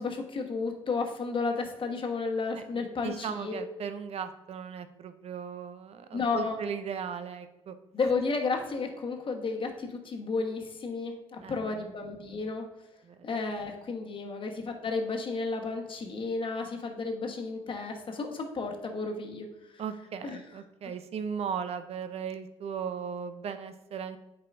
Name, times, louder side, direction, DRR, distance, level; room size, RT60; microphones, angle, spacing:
voice 1, 0.0-3.6 6.1-6.6 7.9-12.6 13.2-19.5 20.2-20.4, left 4 dB, 45° left, 2 dB, 1.2 m, -32 dB
voice 2, 2.6-7.8 11.4-11.9 13.0-13.2 14.2-14.4 19.8-24.2, right 7 dB, 55° right, 10 dB, 0.5 m, -37 dB
8.2 x 4.8 x 2.6 m, 0.97 s
supercardioid pair, 60°, 12 cm